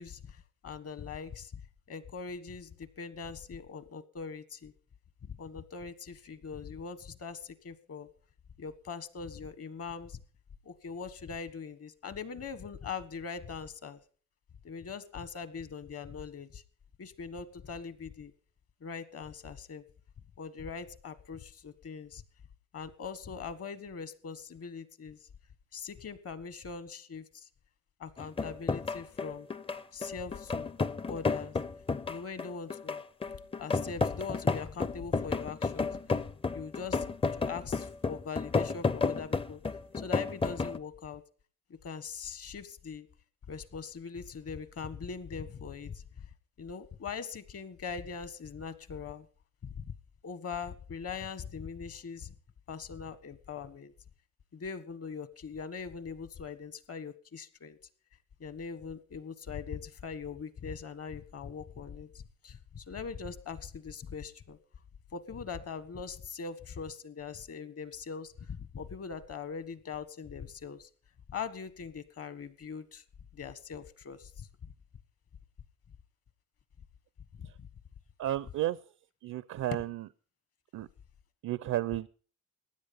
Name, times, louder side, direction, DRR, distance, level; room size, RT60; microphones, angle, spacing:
voice 1, 0.0-1.5 1.9-4.7 5.2-8.1 8.6-10.2 10.6-14.0 14.6-16.6 17.0-18.3 18.8-19.8 20.4-22.2 22.7-25.2 25.7-27.5 28.0-29.5 29.9-30.8 31.1-31.6 32.0-33.0 33.6-36.2 36.5-39.6 39.9-41.2 41.8-43.1 43.5-46.0 46.6-49.3 49.6-49.9 50.2-52.3 52.7-53.9 54.5-57.8 58.4-64.6 65.1-70.9 71.3-73.0 73.3-74.5 77.4-77.5, left 5 dB, 50° left, 14 dB, 1.4 m, -41 dB
sound 1, 28.2-40.8, left 4 dB, 20° left, 0.5 m, -32 dB
voice 2, 78.2-78.8 79.2-80.1 80.7-80.9 81.4-82.1, right 14 dB, 65° right, 19 dB, 0.5 m, -32 dB
15.5 x 10.0 x 5.4 m, 0.41 s
cardioid pair, 90°, 30 cm